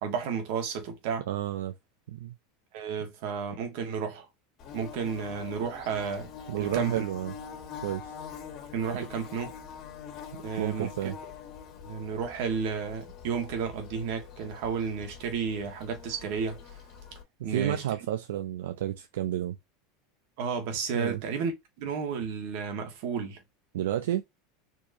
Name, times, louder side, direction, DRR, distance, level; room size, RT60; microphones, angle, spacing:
voice 1, 0.0-1.2 2.7-4.2 4.7-6.3 6.6-7.0 8.7-9.5 10.4-10.9 11.8-16.6 17.4-17.8 20.4-21.5 21.8-23.4, right 6 dB, 65° right, 1.6 m, -32 dB
voice 2, 1.3-1.7 2.1-2.3 6.5-7.3 7.8-8.1 10.3-11.2 17.5-19.6 20.9-21.2 23.7-24.2, right 12 dB, 90° right, 0.5 m, -31 dB
Bird / Buzz, 4.6-17.2, left 7 dB, 45° left, 1.8 m, -44 dB
4.5 x 3.0 x 2.7 m
supercardioid pair, 135°, 0 cm